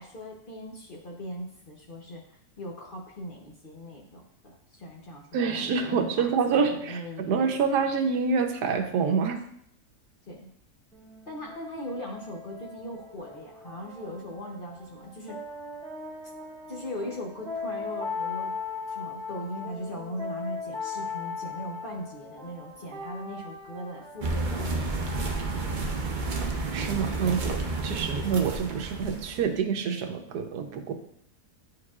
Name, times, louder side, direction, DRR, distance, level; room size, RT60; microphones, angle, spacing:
voice 1, 0.0-5.3 5.5-7.5 10.3-10.5 11.3-15.4 16.7-18.6 18.9-25.5, equal, 45° left, -1 dB, 0.8 m, -39 dB
voice 2, 5.3-9.4 26.7-30.9, right 5 dB, 90° right, 5 dB, 1.3 m, -27 dB
sound 1, 10.9-28.4, left 4 dB, 5° left, 1.4 m, -39 dB
sound 2, 24.2-29.4, right 3 dB, 60° right, 0.5 m, -31 dB
9.4 x 4.7 x 2.4 m, 0.69 s
omnidirectional pair, 1.7 m